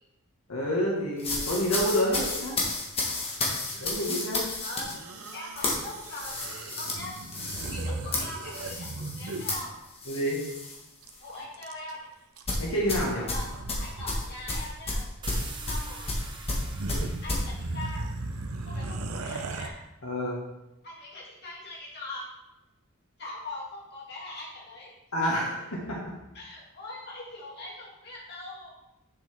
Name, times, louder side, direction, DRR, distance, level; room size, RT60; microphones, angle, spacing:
voice 1, 0.5-2.6 3.7-4.5 10.1-10.4 12.6-13.3 20.0-20.4 25.1-26.0, equal, 85° left, -4 dB, 1.8 m, -28 dB
sound 1, 1.2-10.8 11.1-11.4 12.5-17.5, left 2 dB, 25° left, 1.5 m, -32 dB
voice 2, 3.6-3.9 4.6-5.0 5.3-6.4 6.7-7.2 7.6-9.7 11.2-12.0 13.3-13.5 13.8-15.0 15.7-16.1 17.2-18.1 18.7-19.8 20.8-22.3 23.2-24.9 26.3-28.8, left 2 dB, 50° left, -6 dB, 2.6 m, -41 dB
sound 2, 4.8-9.6 11.0-11.1 11.3-12.0 12.4-12.9 13.3-14.1 14.4-14.6 15.7-15.8 16.2-16.3 16.6-19.7, right 2 dB, 85° right, 0.8 m, -37 dB
sound 3, 15.2-18.8, right 4 dB, 20° right, 0.8 m, -45 dB
8.2 x 6.6 x 3.6 m, 0.93 s
head